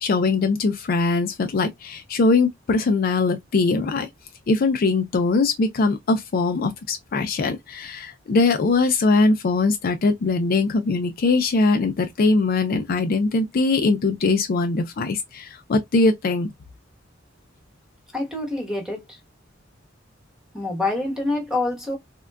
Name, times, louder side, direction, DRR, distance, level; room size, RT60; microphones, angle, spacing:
voice 1, 0.0-4.1 4.5-16.5, left 3 dB, 50° left, 0.4 m, -21 dB
voice 2, 18.1-19.2 20.5-22.0, left 2 dB, 5° right, 1.1 m, -26 dB
3.6 x 2.1 x 2.2 m
head